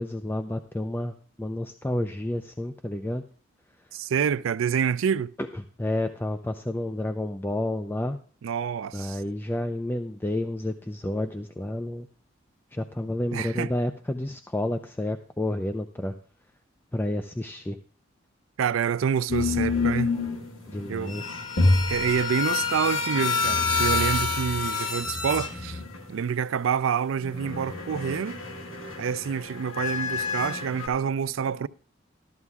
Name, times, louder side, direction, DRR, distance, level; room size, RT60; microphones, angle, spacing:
voice 1, 0.0-3.2 5.4-8.2 8.9-12.1 12.7-16.1 16.9-17.8 20.7-21.4, left 1 dB, 10° left, 0.4 m, -30 dB
voice 2, 3.9-5.3 8.4-9.2 13.3-13.7 18.6-20.2 20.9-21.2 21.9-25.8 26.1-28.4 29.0-31.7, right 7 dB, 85° right, 0.4 m, -27 dB
sound 1, 19.3-26.2 27.2-30.9, left 4 dB, 85° left, 1.7 m, -27 dB
13.5 x 12.5 x 2.3 m
head